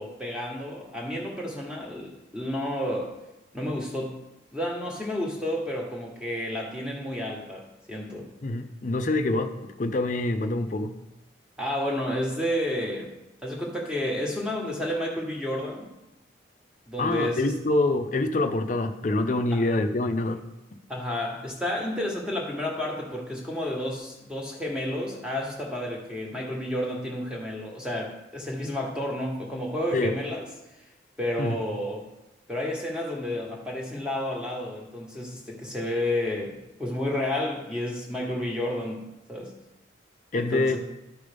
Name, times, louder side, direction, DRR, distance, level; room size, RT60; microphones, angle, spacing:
voice 1, 0.0-3.2 3.5-4.2 4.5-8.3 11.6-13.1 13.4-15.9 16.9-17.5 19.5-19.6 20.9-30.4 31.2-32.1 32.5-39.5 40.3-40.8, left 1 dB, 5° right, -2 dB, 1.2 m, -31 dB
voice 2, 8.4-9.5 9.8-10.9 17.0-20.4 29.9-30.1 31.4-31.6 40.3-40.8, left 2 dB, 40° left, 7 dB, 0.5 m, -25 dB
12.0 x 5.2 x 3.4 m, 0.94 s
head